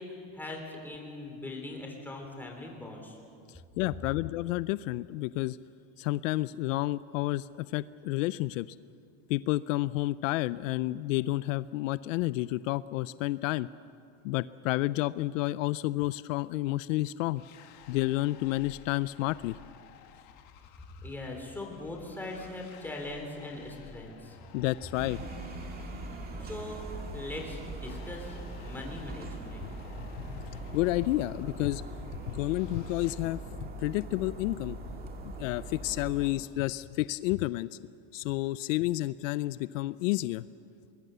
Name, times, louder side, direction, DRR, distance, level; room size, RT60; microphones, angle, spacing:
voice 1, 0.0-3.2 21.0-24.4 25.8-26.9 27.1-29.7, left 2 dB, 5° left, 1 dB, 3.6 m, -41 dB
voice 2, 3.8-5.6 6.0-8.7 9.3-13.7 14.2-17.4 17.9-19.6 24.5-25.3 30.0-30.4 30.7-34.8 35.4-37.7 38.1-40.4, left 17 dB, 80° left, 17 dB, 0.6 m, -30 dB
sound 1, 17.3-33.1, left 8 dB, 45° left, 1.8 m, -54 dB
sound 2, 24.9-36.3, right 2 dB, 25° right, 2.0 m, -41 dB
24.5 x 21.5 x 6.8 m, 2.5 s
supercardioid pair, 155°, 39 cm